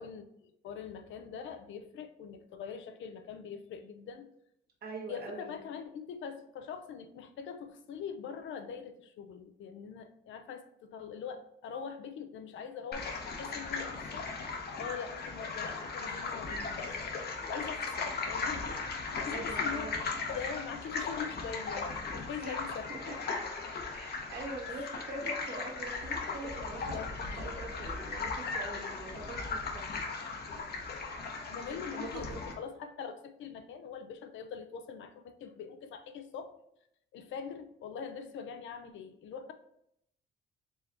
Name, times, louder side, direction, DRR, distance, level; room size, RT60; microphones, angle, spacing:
voice 1, 0.0-4.3 5.1-14.3 14.7-17.1 17.5-18.7 19.2-20.0 20.3-23.2 24.8-24.9 26.7-27.1 31.5-36.5 37.1-39.5, left 7 dB, 75° left, 8 dB, 0.6 m, -43 dB
voice 2, 4.8-5.5 19.3-20.0 22.4-23.2 23.9-29.9 31.9-32.4, right 2 dB, 50° right, 0 dB, 1.3 m, -43 dB
sound 1, 12.9-32.5, left 4 dB, 55° left, 0.9 m, -37 dB
4.5 x 3.2 x 2.8 m, 0.77 s
cardioid pair, 90°, 20 cm